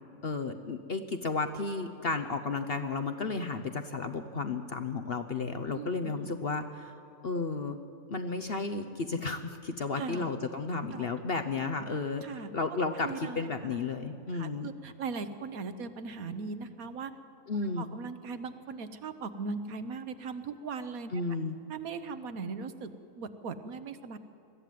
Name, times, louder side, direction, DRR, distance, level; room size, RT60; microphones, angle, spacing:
voice 1, 0.2-6.9 7.2-7.8 8.1-14.7 17.5-17.9 21.1-21.6, left 4 dB, 45° left, 7 dB, 0.9 m, -33 dB
voice 2, 5.7-6.1 10.0-10.3 10.9-11.1 12.2-12.5 13.0-13.5 14.3-17.1 17.8-21.1 21.7-24.2, right 4 dB, 65° right, 10 dB, 1.3 m, -39 dB
21.5 x 14.0 x 9.3 m, 3.0 s
omnidirectional pair, 1.7 m